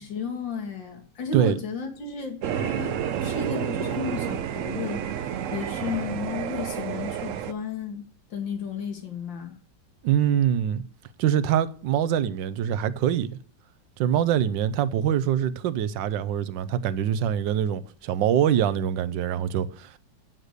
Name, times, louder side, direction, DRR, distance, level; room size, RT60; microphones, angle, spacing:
voice 1, 0.0-2.9 3.2-9.6, left 5 dB, 85° left, 2.6 m, -33 dB
sound 1, 2.4-7.5, right 9 dB, 70° right, 0.8 m, -30 dB
voice 2, 10.0-10.8 11.2-13.4 14.0-20.0, right 10 dB, 90° right, 1.4 m, -24 dB
7.5 x 6.6 x 8.1 m
omnidirectional pair, 2.0 m